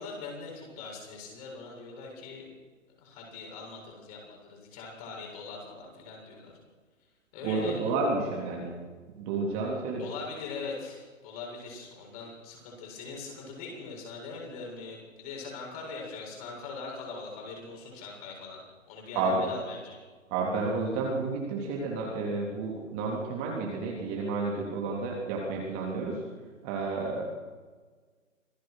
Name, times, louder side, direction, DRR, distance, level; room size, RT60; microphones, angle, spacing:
voice 1, 0.0-2.5 3.0-6.5 7.3-7.8 10.0-18.6 18.9-20.0, left 4 dB, 30° left, -1 dB, 7.5 m, -41 dB
voice 2, 7.4-8.8 9.2-10.1 19.2-19.4 20.3-26.2 26.6-27.2, right 3 dB, 20° right, -2 dB, 3.5 m, -31 dB
26.5 x 18.5 x 6.5 m, 1.4 s
hypercardioid pair, 150°, 39 cm